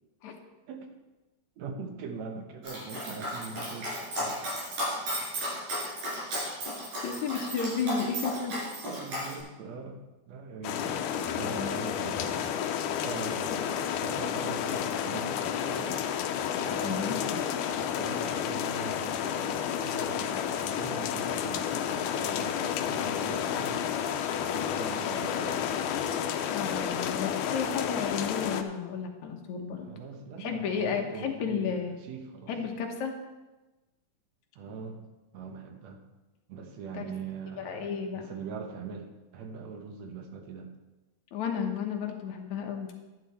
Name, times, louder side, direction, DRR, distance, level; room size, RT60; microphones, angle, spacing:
voice 1, 1.6-4.4 8.8-11.0 11.4-12.5 13.0-16.0 16.6-17.5 18.0-23.9 24.4-25.7 29.8-32.5 34.6-35.0 35.3-36.0 36.5-40.7, right 5 dB, 65° right, 4 dB, 2.2 m, -42 dB
Dog, 2.6-9.3, equal, 80° right, 6.3 m, -34 dB
voice 2, 7.0-8.5 11.6-11.7 13.4-13.6 16.8-17.2 26.5-29.9 30.4-32.0 32.5-33.1 36.9-37.1 37.6-38.3 41.3-42.9, left 6 dB, 70° left, 3 dB, 2.4 m, -32 dB
sound 1, 10.6-28.6, left 9 dB, 90° left, 2.1 m, -31 dB
11.5 x 10.5 x 4.3 m, 1.1 s
omnidirectional pair, 3.6 m